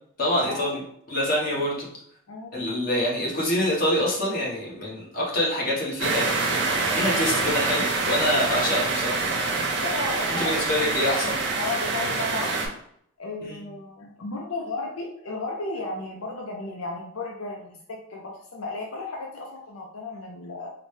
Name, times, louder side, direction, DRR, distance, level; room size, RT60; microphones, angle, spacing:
voice 1, 0.2-0.8 1.1-1.9 2.5-6.3 6.9-9.2 10.3-11.4 13.4-13.6, left 1 dB, 45° left, -4 dB, 1.1 m, -25 dB
voice 2, 2.3-2.7 9.8-10.9 11.6-12.6 13.2-20.7, left 3 dB, 80° left, 0 dB, 0.5 m, -34 dB
sound 1, 6.0-12.7, right 3 dB, 55° right, 0.7 m, -26 dB
4.0 x 2.1 x 3.2 m, 0.68 s
head